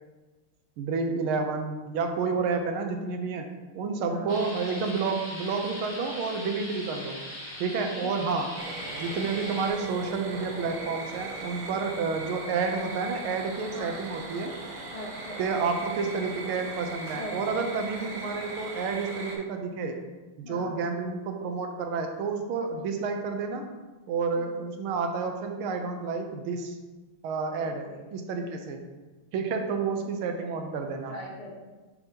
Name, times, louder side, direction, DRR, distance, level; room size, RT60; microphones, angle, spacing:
voice 1, 0.8-3.5 3.7-7.2 7.6-8.5 8.9-14.6 15.4-20.0 20.4-23.7 24.1-26.8 27.2-28.8 29.3-31.1, right 4 dB, 80° right, 4 dB, 1.5 m, -30 dB
sound 1, 4.3-9.7, left 1 dB, 55° left, 2.8 m, -40 dB
voice 2, 8.0-8.4 11.7-12.0 13.7-14.0 14.9-15.5 17.1-17.7 20.4-20.8 22.6-22.7 27.9-28.0 29.6-29.7 30.4-30.6 31.1-31.6, left 1 dB, 75° left, -6 dB, 0.3 m, -41 dB
sound 2, 8.6-19.4, right 2 dB, 55° right, 1.5 m, -39 dB
7.0 x 5.2 x 2.8 m, 1.2 s
omnidirectional pair, 2.4 m